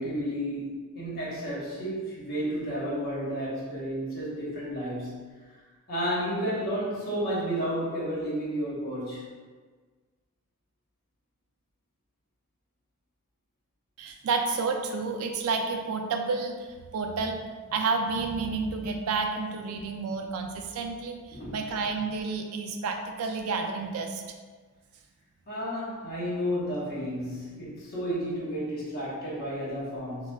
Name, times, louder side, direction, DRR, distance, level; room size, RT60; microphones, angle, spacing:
voice 1, 0.0-5.3 5.9-9.2 21.4-21.5 25.5-30.3, equal, 45° left, -8 dB, 1.1 m, -32 dB
voice 2, 14.0-16.7 16.9-24.2, right 4 dB, 85° right, 4 dB, 0.4 m, -30 dB
4.1 x 2.2 x 2.2 m, 1.4 s
head